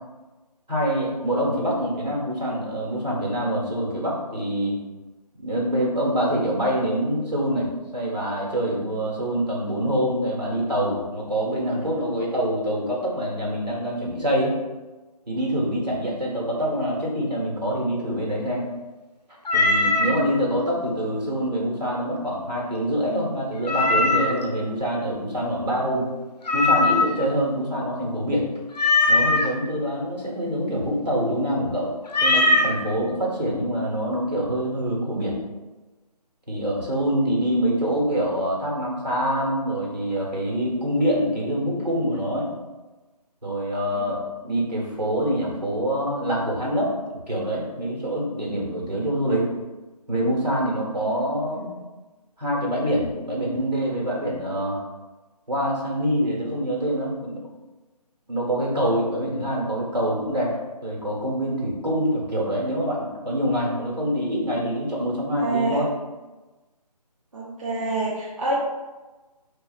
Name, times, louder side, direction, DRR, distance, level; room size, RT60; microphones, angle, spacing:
voice 1, 0.7-4.8 5.4-7.7 7.9-14.6 15.3-18.7 19.5-26.1 26.5-28.5 29.1-31.9 32.2-35.4 36.5-42.5 43.4-46.9 47.3-49.5 50.1-51.7 52.4-54.8 55.5-57.4 58.3-65.9, equal, 85° right, -3 dB, 1.0 m, -25 dB
Meow, 19.5-20.2 23.7-24.4 26.5-27.3 28.7-29.5 32.1-32.7, left 2 dB, 80° left, 0.5 m, -20 dB
voice 2, 65.3-65.9 67.3-68.6, right 2 dB, 55° right, -4 dB, 0.5 m, -28 dB
2.7 x 2.3 x 2.3 m, 1.2 s
figure-of-eight pair, 155°, 21 cm